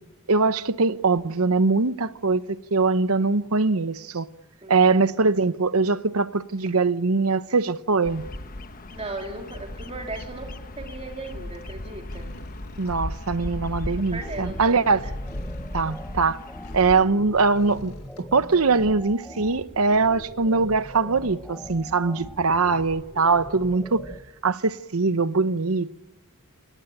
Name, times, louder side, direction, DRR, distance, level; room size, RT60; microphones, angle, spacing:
voice 1, 0.3-4.3 4.7-8.2 12.8-15.0 15.7-16.4 16.7-17.9 18.3-24.0 24.4-25.9, right 4 dB, 70° right, 1.0 m, -22 dB
voice 2, 4.6-4.9 8.9-12.4 14.0-15.1 23.2-23.4, right 2 dB, 30° right, 3.5 m, -37 dB
Bird vocalization bird call bird song, 8.0-17.0, left 1 dB, 40° left, 1.3 m, -36 dB
sound 1, 11.3-11.7 12.1-13.9 14.3-17.1 17.5-19.2 20.0-20.2 20.9-21.0, left 1 dB, 75° left, 2.0 m, -50 dB
sound 2, 14.2-24.2, equal, 5° left, 1.4 m, -42 dB
28.0 x 18.5 x 10.0 m
head